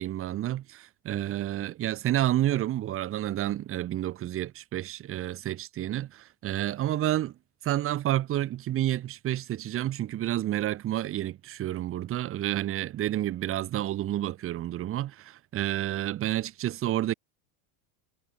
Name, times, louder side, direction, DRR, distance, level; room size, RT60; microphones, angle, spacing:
voice 1, 0.0-7.3 7.6-17.1, right 13 dB, 30° right, 1.1 m, -30 dB
supercardioid pair, 145°, 46 cm